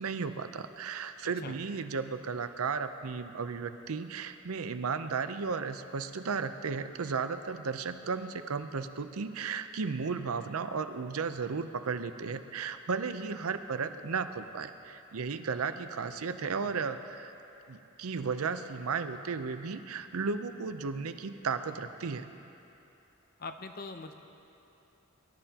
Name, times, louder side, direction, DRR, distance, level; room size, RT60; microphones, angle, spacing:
voice 1, 0.0-17.3 17.7-22.3, right 5 dB, 85° right, 10 dB, 0.6 m, -34 dB
voice 2, 16.4-16.7 23.4-24.1, left 3 dB, 45° left, 7 dB, 0.7 m, -42 dB
23.0 x 12.0 x 2.9 m, 2.9 s
head